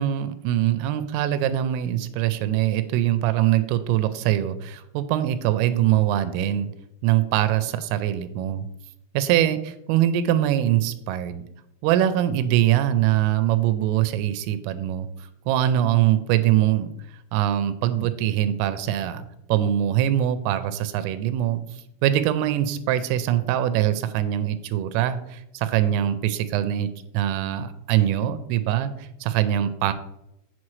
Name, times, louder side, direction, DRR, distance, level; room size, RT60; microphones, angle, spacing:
voice 1, 0.0-6.7 7.0-8.7 9.1-11.4 11.8-16.9 17.3-29.9, right 12 dB, 85° right, 11 dB, 3.2 m, -23 dB
7.9 x 7.4 x 3.1 m, 0.81 s
omnidirectional pair, 5.8 m